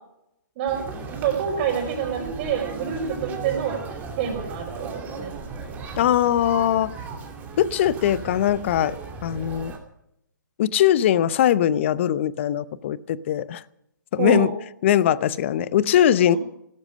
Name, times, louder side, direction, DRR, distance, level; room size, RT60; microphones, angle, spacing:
Conversation, 0.7-9.8, right 4 dB, 15° right, 2.7 m, -36 dB
voice 1, 1.2-3.8 4.2-5.3 14.2-14.5 16.3-16.4, right 7 dB, 35° right, -4 dB, 4.8 m, -26 dB
voice 2, 6.0-6.9 7.6-9.0 9.2-9.7 10.6-13.6 14.1-14.5 14.8-16.4, left 11 dB, 35° left, 18 dB, 0.7 m, -21 dB
17.5 x 12.5 x 6.4 m, 0.80 s
hypercardioid pair, 145°, 11 cm